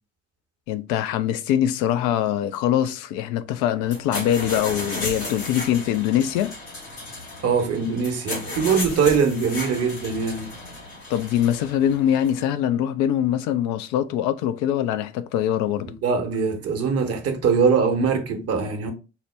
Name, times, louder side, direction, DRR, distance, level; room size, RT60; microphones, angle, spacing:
voice 1, 0.7-6.5 11.1-15.9, left 10 dB, 65° left, 0.5 m, -23 dB
sound 1, 3.8-12.4, left 2 dB, 85° left, 1.3 m, -34 dB
voice 2, 7.4-10.5 16.0-18.9, right 5 dB, 50° right, 1.0 m, -22 dB
4.5 x 2.1 x 3.2 m
hypercardioid pair, 45°, 31 cm